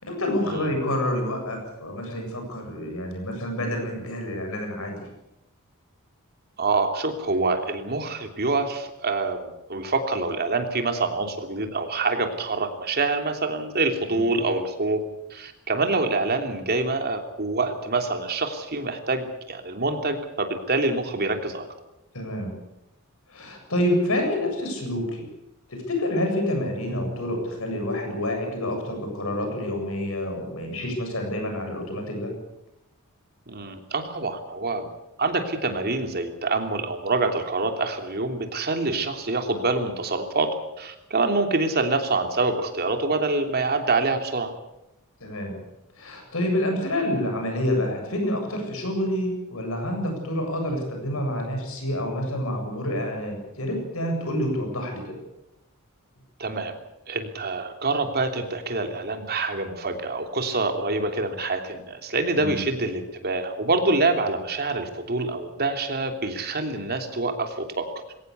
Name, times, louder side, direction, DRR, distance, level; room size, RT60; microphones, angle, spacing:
voice 1, 0.0-5.0 14.1-14.2 22.1-22.5 23.3-25.3 25.7-32.3 45.2-45.6 46.0-55.2 62.4-62.6, left 1 dB, 70° left, 3 dB, 7.8 m, -28 dB
voice 2, 6.6-15.0 15.3-21.6 33.5-34.9 35.2-40.5 40.8-44.5 56.4-56.7 57.1-67.9, right 3 dB, 45° right, 5 dB, 3.2 m, -26 dB
22.0 x 18.0 x 8.3 m, 0.90 s
head